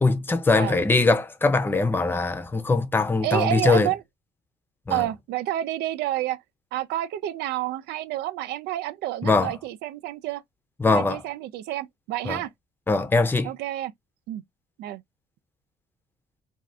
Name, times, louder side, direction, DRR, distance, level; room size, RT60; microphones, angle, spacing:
voice 1, 0.0-3.9 4.9-5.0 9.2-9.5 10.8-11.2 12.2-12.4 12.9-13.5, left 3 dB, 10° left, 0.6 m, -22 dB
voice 2, 3.2-4.0 4.9-6.4 6.7-10.4 10.9-12.5 13.4-13.9 14.3-14.4 14.8-15.0, right 14 dB, 80° right, 0.4 m, -29 dB
2.6 x 2.4 x 3.2 m
cardioid pair, 110°, 17 cm